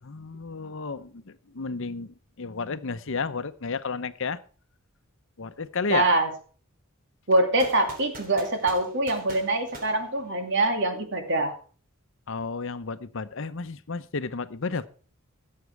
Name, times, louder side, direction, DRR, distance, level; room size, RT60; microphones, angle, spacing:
voice 1, 0.0-4.4 5.4-6.1 12.3-14.9, left 4 dB, 65° left, 13 dB, 0.8 m, -32 dB
voice 2, 5.9-6.3 7.3-11.5, right 2 dB, 60° right, 5 dB, 2.6 m, -24 dB
sound 1, 7.6-10.8, right 2 dB, 45° right, 3.4 m, -44 dB
16.0 x 7.6 x 4.7 m, 0.42 s
head